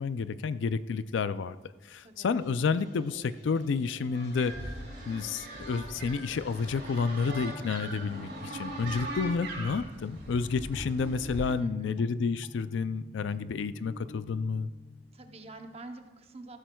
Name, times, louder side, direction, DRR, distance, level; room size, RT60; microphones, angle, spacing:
voice 1, 0.0-1.6 1.8-4.5 5.1-14.7, left 5 dB, 75° left, 14 dB, 0.4 m, -30 dB
voice 2, 2.0-2.4 11.6-12.1 15.1-16.6, right 2 dB, 30° right, 6 dB, 0.7 m, -46 dB
sound 1, 2.4-9.4, equal, 55° left, 2.1 m, -55 dB
sound 2, 4.2-11.5, right 1 dB, 60° right, 2.6 m, -40 dB
sound 3, 5.9-15.8, left 2 dB, 25° left, 0.6 m, -50 dB
14.5 x 12.0 x 2.3 m, 1.2 s
head